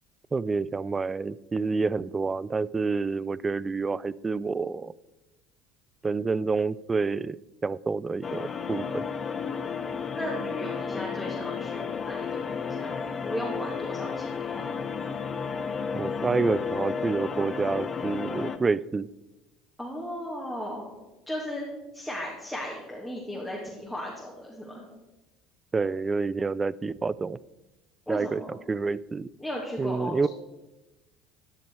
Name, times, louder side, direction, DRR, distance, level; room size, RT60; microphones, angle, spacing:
voice 1, 0.3-4.9 6.0-7.4 7.6-9.0 15.9-19.1 25.7-27.4 28.1-29.3 29.8-30.3, right 4 dB, 25° right, 21 dB, 0.3 m, -28 dB
sound 1, 8.2-18.6, left 6 dB, 35° left, 0.8 m, -32 dB
voice 2, 10.1-14.7 19.8-20.9 21.3-21.6 21.9-24.8 28.1-28.5 29.4-30.3, equal, ahead, -4 dB, 2.4 m, -36 dB
13.5 x 6.0 x 4.7 m, 1.0 s
supercardioid pair, 85°, 0 cm